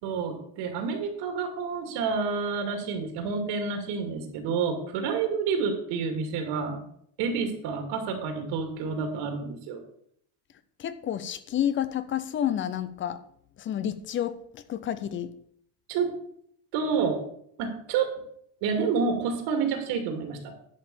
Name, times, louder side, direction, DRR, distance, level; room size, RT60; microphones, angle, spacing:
voice 1, 0.0-6.8 7.2-9.8 15.9-16.2 16.7-17.2 17.6-18.1 18.6-20.4, right 5 dB, 65° right, 5 dB, 2.5 m, -29 dB
voice 2, 10.8-13.2 13.6-15.3, left 10 dB, 30° left, 14 dB, 0.5 m, -30 dB
11.0 x 5.5 x 7.0 m, 0.68 s
cardioid pair, 160°, 45 cm